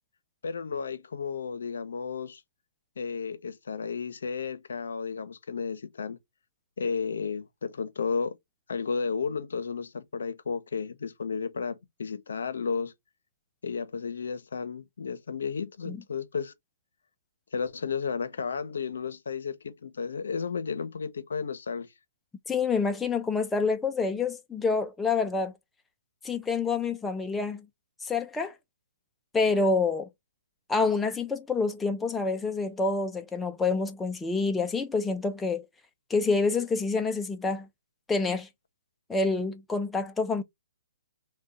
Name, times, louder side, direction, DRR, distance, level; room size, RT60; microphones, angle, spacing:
voice 1, 0.4-2.4 3.0-6.2 6.8-8.3 8.7-12.9 13.6-16.5 17.5-21.9, left 5 dB, 75° left, 0.6 m, -33 dB
voice 2, 22.5-25.5 26.2-27.7 28.0-28.5 29.3-30.1 30.7-35.6 36.1-37.7 38.1-38.5 39.1-40.4, left 4 dB, 5° left, 0.3 m, -27 dB
2.7 x 2.2 x 3.4 m
hypercardioid pair, 150°, 0 cm